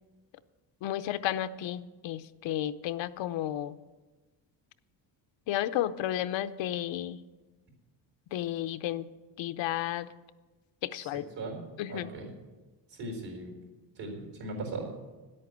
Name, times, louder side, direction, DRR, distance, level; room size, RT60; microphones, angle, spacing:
voice 1, 0.8-3.7 5.5-7.2 8.3-9.1 9.4-10.1 10.8-11.2 11.8-12.1, left 12 dB, 80° left, 13 dB, 0.7 m, -32 dB
voice 2, 11.9-12.3 12.9-13.5 14.0-14.9, right 2 dB, 70° right, 2 dB, 4.3 m, -38 dB
10.5 x 8.7 x 8.1 m, 1.2 s
cardioid pair, 150°, 44 cm